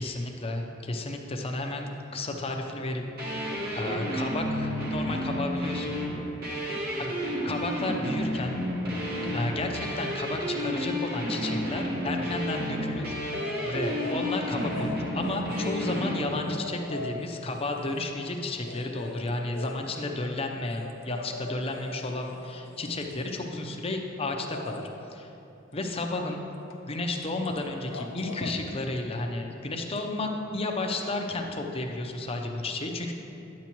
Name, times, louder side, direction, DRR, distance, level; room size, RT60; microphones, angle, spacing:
voice 1, 0.0-3.4 3.7-6.0 7.4-8.6 9.3-25.3 25.7-26.4 26.9-33.1, left 2 dB, 30° left, 3 dB, 0.7 m, -32 dB
sound 1, 3.2-16.2, equal, 55° right, 1.4 m, -31 dB
sound 2, 13.3-14.2 14.6-18.1 18.6-23.5 24.4-24.9 26.7-26.8 27.1-27.6 27.8-28.6 30.0-30.1, left 3 dB, 75° left, 0.6 m, -41 dB
9.5 x 8.4 x 3.0 m, 2.9 s
head